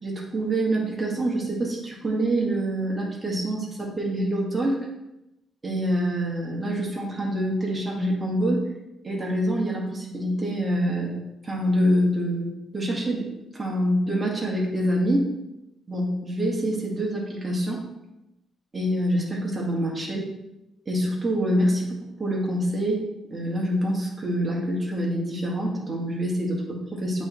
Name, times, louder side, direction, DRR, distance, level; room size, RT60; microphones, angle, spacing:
voice 1, 0.0-4.8 5.6-8.6 9.0-11.2 11.4-13.3 13.5-15.3 15.9-17.8 18.7-20.3 20.9-27.2, equal, 25° right, -3 dB, 2.0 m, -26 dB
8.7 x 3.5 x 3.2 m, 0.93 s
cardioid pair, 90°, 0 cm